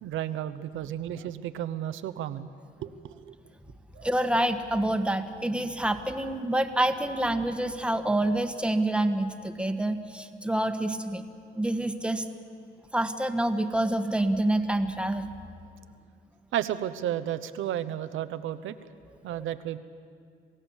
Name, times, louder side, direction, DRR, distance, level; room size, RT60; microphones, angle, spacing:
voice 1, 0.0-2.5 2.8-3.4 3.9-4.1 16.5-18.8 19.2-19.8, right 11 dB, 85° right, 12 dB, 0.9 m, -33 dB
voice 2, 4.0-11.2 11.5-12.3 12.9-15.3, right 1 dB, 5° right, 7 dB, 1.4 m, -27 dB
27.5 x 16.0 x 7.3 m, 2.3 s
cardioid pair, 90°, 20 cm